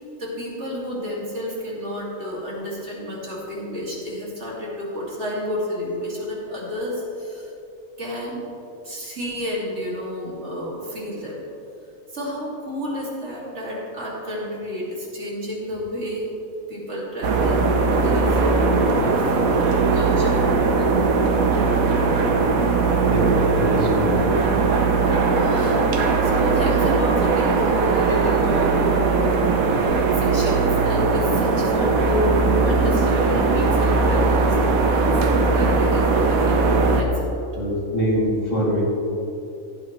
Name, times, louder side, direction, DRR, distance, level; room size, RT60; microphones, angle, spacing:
voice 1, 0.2-7.5 8.0-8.4 8.8-11.4 12.1-16.3 16.7-19.6 19.9-21.2 25.2-29.4 29.7-35.2 35.5-37.3, equal, 55° right, -5 dB, 2.8 m, -30 dB
sound 1, 17.2-37.0, right 4 dB, 85° right, 1.4 m, -19 dB
voice 2, 23.0-24.2 37.5-38.8, equal, 60° left, -7 dB, 3.3 m, -23 dB
16.5 x 8.7 x 3.2 m, 2.8 s
omnidirectional pair, 1.4 m